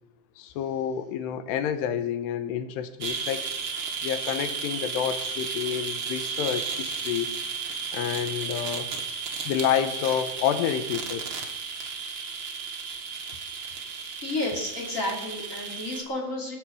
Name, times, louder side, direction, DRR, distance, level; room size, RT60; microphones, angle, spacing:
voice 1, 0.4-3.5 4.0-7.3 7.9-8.9 9.4-11.3, left 9 dB, 90° left, 10 dB, 3.1 m, -29 dB
sound 1, 3.0-16.0, right 5 dB, 75° right, 1.1 m, -33 dB
voice 2, 13.3-13.7 14.2-16.6, left 2 dB, 20° left, -1 dB, 2.8 m, -32 dB
18.5 x 8.0 x 7.5 m, 0.92 s
omnidirectional pair, 4.7 m